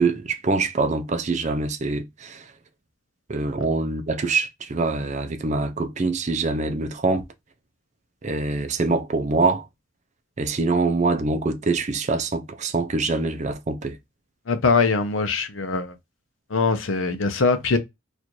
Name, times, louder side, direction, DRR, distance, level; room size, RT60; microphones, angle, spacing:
voice 1, 0.0-2.5 3.3-7.3 8.2-9.7 10.4-13.9, right 3 dB, 35° right, 0.5 m, -24 dB
voice 2, 14.5-15.9 16.5-17.8, left 4 dB, 75° left, 0.7 m, -22 dB
4.1 x 2.5 x 3.0 m
head